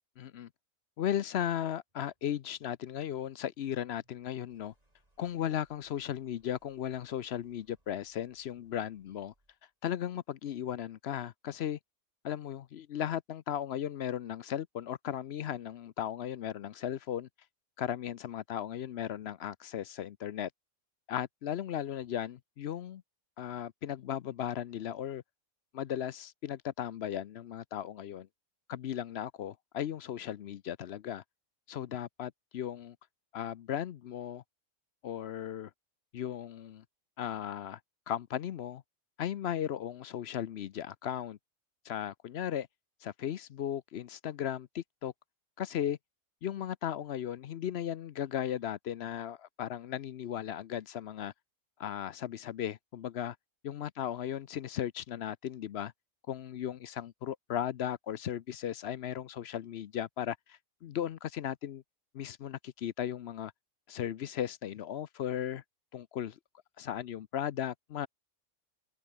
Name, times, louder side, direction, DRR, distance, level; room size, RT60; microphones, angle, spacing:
voice 1, 0.2-0.5 1.0-4.7 5.2-9.3 9.8-11.8 12.2-17.3 17.8-20.5 21.1-23.0 23.4-25.2 25.7-28.3 28.7-31.2 31.7-33.0 33.3-34.4 35.0-35.7 36.1-36.8 37.2-37.8 38.1-38.8 39.2-41.4 41.8-42.7 43.0-45.1 45.6-46.0 46.4-51.3 51.8-53.4 53.6-55.9 56.3-61.8 62.1-63.5 63.9-65.6 65.9-66.4 66.8-68.1, left 10 dB, 60° left, 0.8 m, -36 dB
sound 1, 1.9-9.7, right 1 dB, 30° right, 5.4 m, -74 dB
omnidirectional pair, 1.4 m